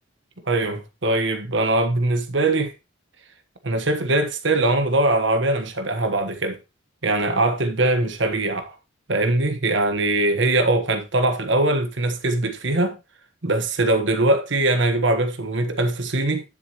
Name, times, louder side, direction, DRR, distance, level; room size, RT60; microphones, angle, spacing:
voice 1, 0.5-2.7 3.6-6.6 7.0-8.7 9.1-13.0 13.4-16.4, right 2 dB, 70° right, 1.4 m, -21 dB
10.5 x 6.9 x 3.0 m
head